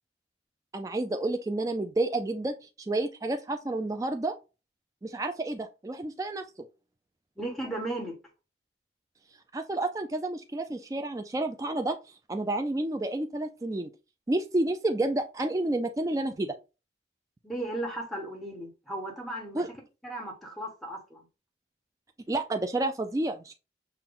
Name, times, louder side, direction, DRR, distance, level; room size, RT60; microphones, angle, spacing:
voice 1, 0.7-4.3 5.0-6.5 9.5-12.0 12.3-13.9 14.3-16.5 19.5-19.7 22.3-23.6, right 2 dB, 20° right, 0.3 m, -30 dB
voice 2, 7.4-8.2 17.4-19.6 20.0-21.2, right 1 dB, ahead, 1.2 m, -35 dB
5.9 x 2.2 x 3.6 m
head